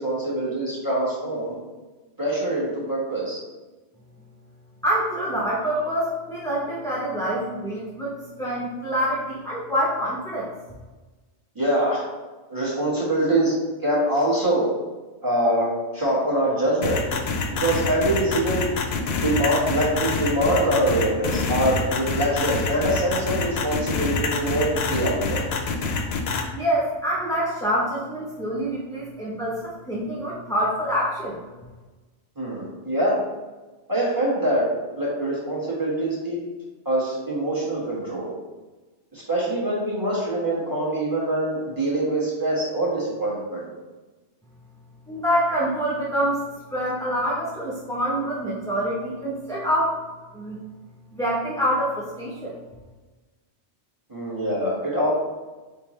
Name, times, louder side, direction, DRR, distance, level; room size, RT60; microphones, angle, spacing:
voice 1, 0.0-1.6 2.2-3.4 11.5-12.0 12.5-14.7 15.2-15.7 15.9-17.0 17.5-18.7 19.0-25.5 32.4-33.2 33.9-34.7 35.0-36.4 36.8-38.3 39.1-43.6 54.1-55.1, right 1 dB, 20° right, -7 dB, 1.3 m, -24 dB
voice 2, 4.8-8.1 8.4-10.5 26.5-31.4 45.1-46.4 46.7-50.0 50.3-50.6 51.1-52.5, equal, 5° left, -7 dB, 0.5 m, -26 dB
sound 1, 16.8-26.4, left 4 dB, 70° left, 0.8 m, -26 dB
4.3 x 3.5 x 3.1 m, 1.2 s
omnidirectional pair, 1.2 m